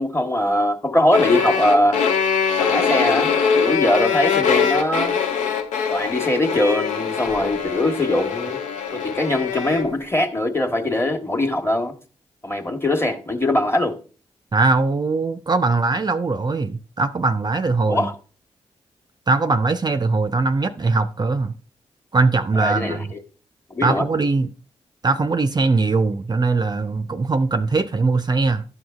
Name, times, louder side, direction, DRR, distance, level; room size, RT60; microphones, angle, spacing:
voice 1, 0.0-2.0 2.6-5.1 5.9-8.6 8.9-11.9 12.4-14.0 17.9-18.1 22.6-23.2 23.7-24.0, left 1 dB, 20° left, 1.2 m, -21 dB
sound 1, 1.1-9.9, left 6 dB, 85° left, 0.6 m, -22 dB
voice 2, 14.5-18.1 19.3-21.5 22.1-23.1 23.8-24.5 25.0-28.6, right 3 dB, 35° right, 0.5 m, -21 dB
11.0 x 6.3 x 2.4 m
supercardioid pair, 40°, 12 cm